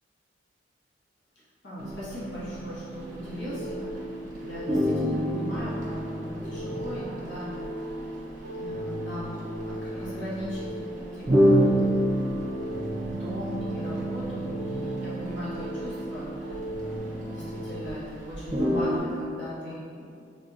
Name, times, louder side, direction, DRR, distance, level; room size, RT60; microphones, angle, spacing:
voice 1, 1.6-7.9 8.6-10.7 11.1-12.4 12.9-20.1, equal, 70° left, -10 dB, 1.2 m, -39 dB
sound 1, 1.8-4.0 4.3-4.4 4.7-17.9 18.2-19.0, equal, 40° right, 0.6 m, -29 dB
sound 2, 3.0-17.9, equal, 85° right, 0.4 m, -37 dB
3.6 x 2.4 x 2.6 m, 2.4 s
head